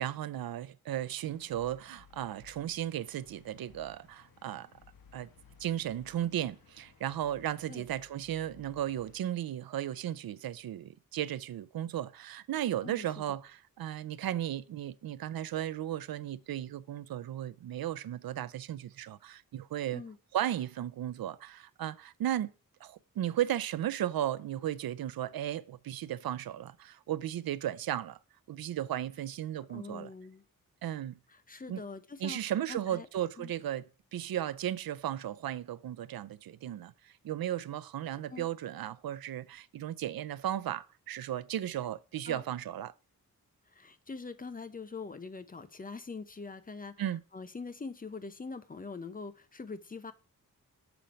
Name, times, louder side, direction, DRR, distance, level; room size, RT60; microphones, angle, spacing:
voice 1, 0.0-4.7 5.1-5.3 5.6-20.0 20.3-22.5 22.8-28.2 28.5-30.1 30.8-31.2 31.7-31.8 32.2-33.8 34.1-42.9 47.0-47.2, right 11 dB, 90° right, 0.5 m, -35 dB
sound 1, 1.2-9.2, left 6 dB, 80° left, 1.2 m, -60 dB
voice 2, 29.7-30.4 31.3-32.4 32.7-33.1 33.4-33.5 38.3-38.5 42.3-42.4 43.7-50.1, left 4 dB, 25° left, 0.5 m, -43 dB
7.0 x 4.3 x 5.1 m
wide cardioid pair, 150°, 35 cm